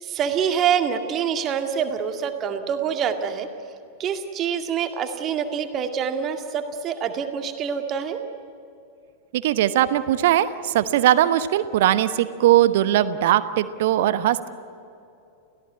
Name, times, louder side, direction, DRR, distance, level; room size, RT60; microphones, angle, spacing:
voice 1, 0.0-3.5 4.0-8.2, right 7 dB, 30° right, 6 dB, 2.1 m, -26 dB
voice 2, 9.3-14.5, right 13 dB, 55° right, 14 dB, 1.1 m, -20 dB
29.5 x 17.0 x 9.6 m, 2.6 s
figure-of-eight pair, 90°, 0 cm